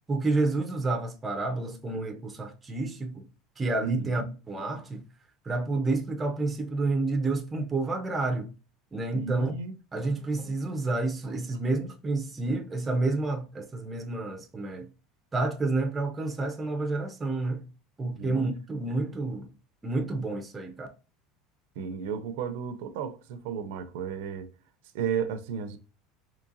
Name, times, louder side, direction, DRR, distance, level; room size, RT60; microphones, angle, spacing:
voice 1, 0.1-3.3 3.6-5.1 5.4-8.5 8.9-9.5 9.9-14.9 15.3-17.7 18.0-19.5 19.8-20.9, right 2 dB, 10° right, 0.4 m, -29 dB
voice 2, 3.8-4.3 9.1-9.7 10.0-10.1 18.0-18.4 21.8-24.5 24.9-25.8, right 7 dB, 65° right, 0.5 m, -33 dB
3.7 x 3.1 x 2.6 m
cardioid pair, 180°, 0 cm